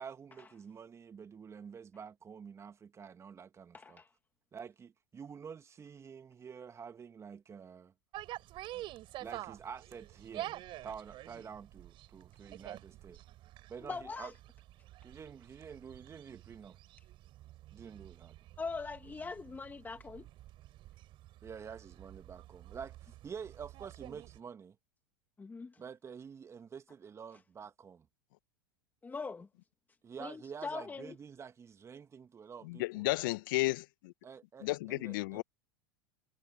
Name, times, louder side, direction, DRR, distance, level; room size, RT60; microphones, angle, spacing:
voice 1, 0.0-4.0 4.5-7.9 9.2-10.6 10.8-13.2 13.7-14.3 15.0-16.8 17.7-18.3 21.4-24.8 25.8-28.1 30.0-33.1 34.2-35.4, right 6 dB, 25° right, 2.0 m, -48 dB
voice 2, 3.7-4.1 8.7-8.8 13.8-14.3 18.6-20.3 25.4-25.8 29.0-29.5 30.2-31.2, left 4 dB, 15° left, 2.0 m, -42 dB
sound 1, 8.1-24.4, right 15 dB, 45° right, 6.7 m, -49 dB
voice 3, 32.6-34.1 34.6-35.4, left 20 dB, 60° left, 1.3 m, -33 dB
hypercardioid pair, 95°, 12 cm